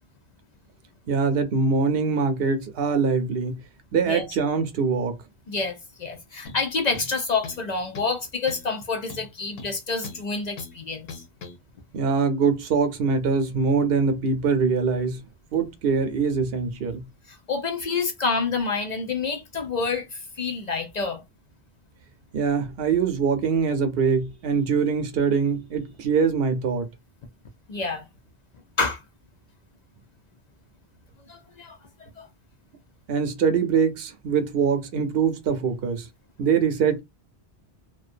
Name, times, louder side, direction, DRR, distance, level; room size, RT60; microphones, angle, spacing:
voice 1, 1.1-3.6 3.9-5.2 11.9-15.2 15.5-17.1 22.3-26.9 33.1-36.1 36.4-37.0, right 5 dB, 65° right, 0.9 m, -23 dB
voice 2, 5.5-11.2 17.3-21.2 27.7-28.1 28.8-29.0 31.3-32.3, left 4 dB, 55° left, 0.5 m, -28 dB
sound 1, 6.5-6.7 7.0-7.7 8.0-8.2 8.5-8.7 9.1-10.2 10.6-10.8 11.1-11.6, left 4 dB, 70° left, 0.9 m, -40 dB
2.5 x 2.2 x 2.5 m
omnidirectional pair, 1.1 m